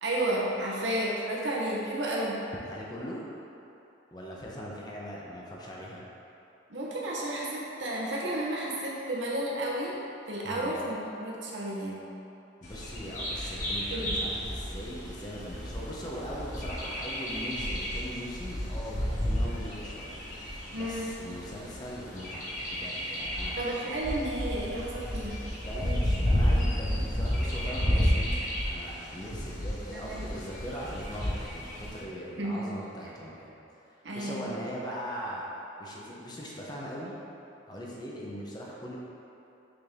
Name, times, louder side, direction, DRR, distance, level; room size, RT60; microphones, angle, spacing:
voice 1, 0.0-2.4 6.7-10.0 10.3-12.0 13.9-14.2 20.7-21.1 23.6-25.4 29.9-30.2 32.4-32.6 34.0-34.5, right 1 dB, 75° right, -4 dB, 1.0 m, -32 dB
voice 2, 2.5-3.2 4.1-6.0 10.4-10.8 12.6-20.2 20.7-23.5 23.8-24.0 25.5-33.5 34.1-35.5 35.8-37.2 37.7-39.0, equal, 25° left, -4 dB, 0.8 m, -40 dB
Bird vocalization bird call bird song, 12.6-32.0, equal, 45° left, 1.3 m, -32 dB
6.7 x 3.9 x 3.6 m, 2.9 s
head